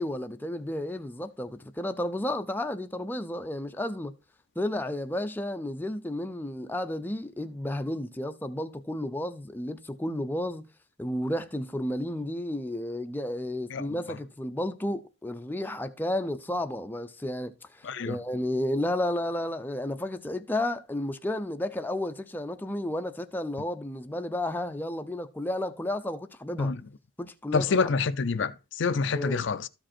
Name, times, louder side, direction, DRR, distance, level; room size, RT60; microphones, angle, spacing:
voice 1, 0.0-4.1 4.6-10.7 11.0-26.7 27.2-27.9 29.1-29.4, left 1 dB, 10° left, 0.5 m, -32 dB
voice 2, 17.8-18.2 26.6-26.8 27.5-29.7, left 4 dB, 60° left, 0.5 m, -27 dB
13.0 x 5.1 x 4.3 m
head